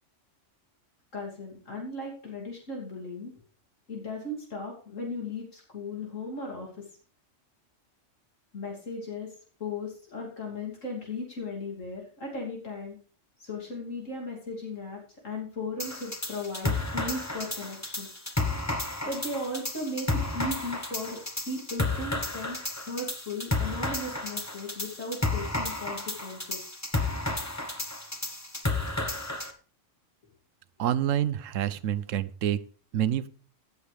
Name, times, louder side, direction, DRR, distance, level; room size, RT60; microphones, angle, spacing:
voice 1, 1.1-3.3 3.9-6.8 8.5-9.3 9.6-13.0 13.4-18.3 19.0-21.2 21.5-26.6, left 2 dB, 85° left, -1 dB, 3.3 m, -37 dB
sound 1, 15.8-29.5, left 2 dB, 15° left, 1.0 m, -32 dB
voice 2, 30.8-32.6 32.9-33.3, right 10 dB, 85° right, 16 dB, 1.1 m, -27 dB
17.0 x 8.1 x 3.4 m, 0.41 s
omnidirectional pair, 1.3 m